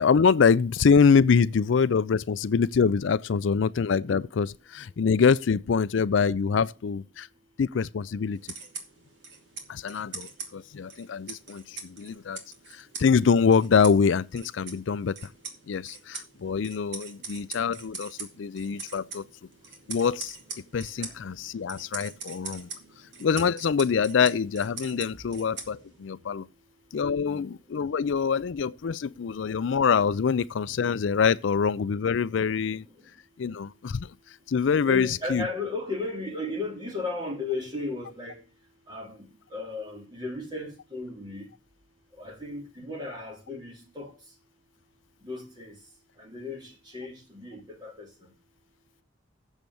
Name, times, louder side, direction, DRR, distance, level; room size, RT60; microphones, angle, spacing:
voice 1, 0.0-7.3 7.6-8.4 9.7-12.4 12.7-15.1 15.7-19.2 19.9-20.4 20.7-22.7 23.2-26.5 26.9-32.8 33.4-34.1 34.5-35.5, left 6 dB, 75° left, 0.4 m, -24 dB
sound 1, 8.4-26.1, right 4 dB, 60° right, 2.4 m, -43 dB
voice 2, 34.8-38.4 38.9-41.5 42.2-44.1 45.2-45.8 46.2-48.1, left 2 dB, 20° right, 3.2 m, -35 dB
7.3 x 6.9 x 7.8 m
head